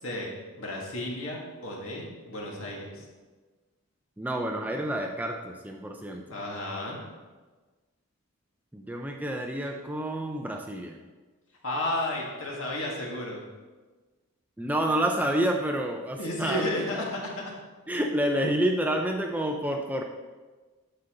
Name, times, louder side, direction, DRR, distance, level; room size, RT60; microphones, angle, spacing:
voice 1, 0.0-3.0 6.3-7.0 11.6-13.4 16.2-17.5, left 1 dB, 65° left, -2 dB, 2.0 m, -33 dB
voice 2, 4.2-6.2 8.7-10.9 14.6-16.8 17.9-20.0, right 1 dB, 5° right, 2 dB, 0.4 m, -29 dB
9.6 x 6.8 x 3.8 m, 1.3 s
head